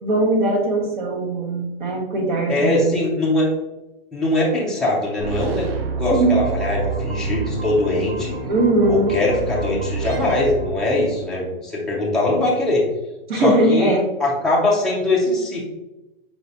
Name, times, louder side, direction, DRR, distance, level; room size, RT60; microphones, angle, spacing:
voice 1, 0.0-3.0 6.1-6.4 8.5-9.1 13.3-14.1, right 1 dB, 55° right, 2 dB, 1.1 m, -20 dB
voice 2, 2.5-3.5 4.1-5.7 6.0-8.4 8.9-12.9 13.3-15.7, left 2 dB, ahead, -6 dB, 0.4 m, -21 dB
sound 1, 5.2-11.3, right 4 dB, 80° right, 0.7 m, -28 dB
4.8 x 3.3 x 2.6 m, 0.98 s
hypercardioid pair, 150°, 29 cm